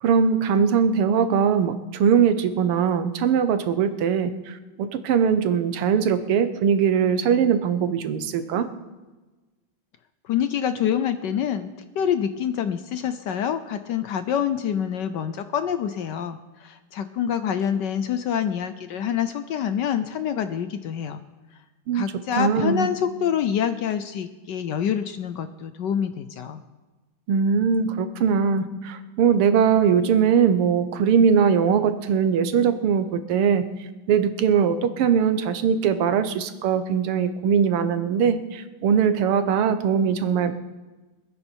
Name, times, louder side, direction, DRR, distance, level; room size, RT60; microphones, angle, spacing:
voice 1, 0.0-8.7 21.9-22.1 22.4-22.9 27.3-33.7 34.1-40.5, right 7 dB, 90° right, 10 dB, 1.9 m, -21 dB
voice 2, 10.2-11.7 11.9-21.2 21.9-26.6, left 8 dB, 70° left, 10 dB, 1.1 m, -26 dB
24.0 x 9.8 x 4.5 m, 1.2 s
omnidirectional pair, 2.4 m